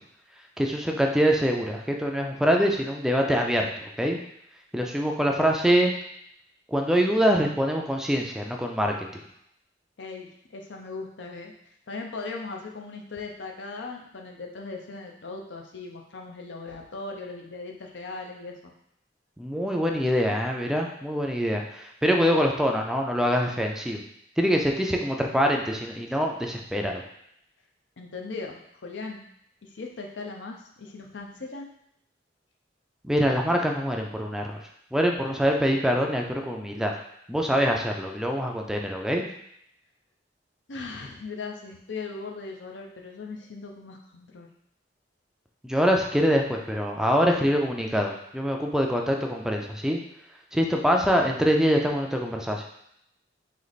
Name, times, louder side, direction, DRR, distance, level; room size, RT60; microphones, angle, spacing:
voice 1, 0.6-4.2 4.7-5.9 6.7-9.2 19.4-24.0 24.4-27.0 33.0-34.6 34.9-36.9 37.3-39.3 45.6-50.0 50.5-52.7, equal, 5° right, 1 dB, 0.4 m, -24 dB
voice 2, 10.0-11.5 11.9-18.7 28.0-29.2 29.6-31.7 40.7-44.5, left 3 dB, 85° left, 1 dB, 0.6 m, -38 dB
3.2 x 3.1 x 4.0 m, 0.73 s
head